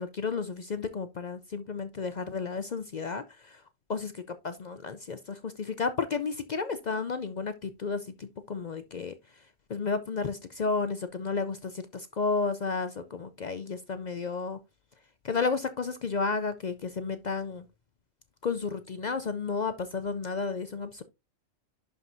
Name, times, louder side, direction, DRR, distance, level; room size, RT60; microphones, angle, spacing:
voice 1, 0.0-3.6 3.9-4.1 4.4-9.1 9.7-14.6 15.2-17.7 18.4-21.0, left 4 dB, 55° left, 0.5 m, -32 dB
11.0 x 4.6 x 2.6 m
omnidirectional pair, 1.3 m